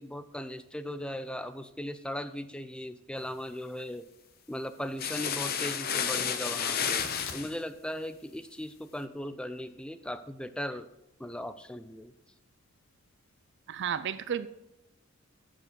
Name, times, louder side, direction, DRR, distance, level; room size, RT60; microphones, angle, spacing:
voice 1, 0.0-4.1 4.5-7.0 7.3-10.9 11.2-12.1, left 1 dB, 5° left, 11 dB, 0.4 m, -38 dB
sound 1, 5.0-7.5, left 7 dB, 45° left, 0.7 m, -31 dB
Tearing, 6.8-13.5, left 6 dB, 70° left, 1.0 m, -50 dB
voice 2, 13.7-14.5, right 8 dB, 60° right, 13 dB, 0.4 m, -32 dB
7.5 x 6.8 x 6.3 m, 0.87 s
head